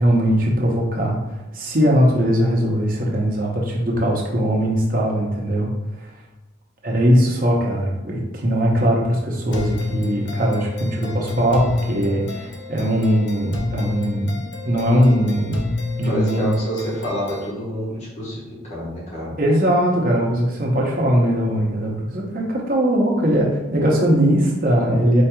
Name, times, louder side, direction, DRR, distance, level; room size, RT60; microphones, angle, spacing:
voice 1, 0.0-5.7 6.0-6.1 6.8-14.3 14.6-15.6 16.0-16.5 19.4-25.2, equal, 45° right, -1 dB, 0.7 m, -20 dB
sound 1, 9.5-17.5, left 3 dB, 65° left, 0.6 m, -30 dB
voice 2, 16.1-18.4 18.7-19.3, equal, 35° left, -6 dB, 1.3 m, -27 dB
4.5 x 2.9 x 2.3 m, 1.1 s
head